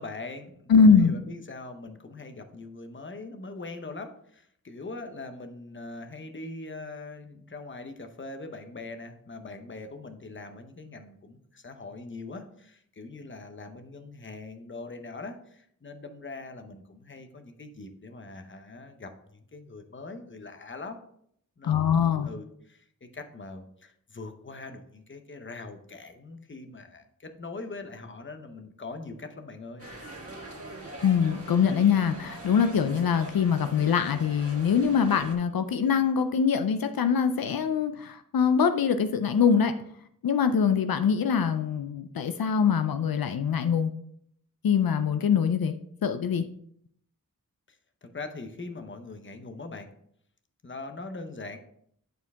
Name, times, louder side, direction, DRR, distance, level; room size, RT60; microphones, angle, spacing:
voice 1, 0.0-21.0 21.6-29.9 47.7-49.9 50.6-51.6, left 3 dB, 35° left, 0.8 m, -42 dB
voice 2, 0.7-1.1 21.6-22.3 31.0-39.7 40.2-43.9 44.6-45.8 46.0-46.5, left 6 dB, 85° left, 0.5 m, -23 dB
sound 1, 29.8-35.4, right 1 dB, 40° right, 1.7 m, -43 dB
9.3 x 4.5 x 3.5 m
wide cardioid pair, 85°, 35 cm